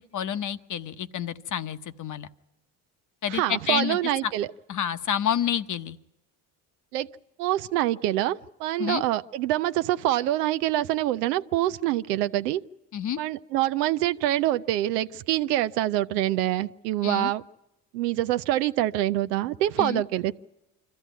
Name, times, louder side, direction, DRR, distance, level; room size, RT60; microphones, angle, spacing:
voice 1, 0.1-2.3 3.2-4.3 4.7-6.0 8.8-9.0 12.9-13.2 17.0-17.3 19.8-20.0, left 9 dB, 40° left, 12 dB, 1.0 m, -29 dB
voice 2, 3.3-4.5 6.9-7.1 7.4-12.6 13.2-17.4 17.9-20.3, right 14 dB, 85° right, 13 dB, 0.7 m, -25 dB
25.5 x 14.0 x 9.3 m, 0.97 s
hypercardioid pair, 75°, 46 cm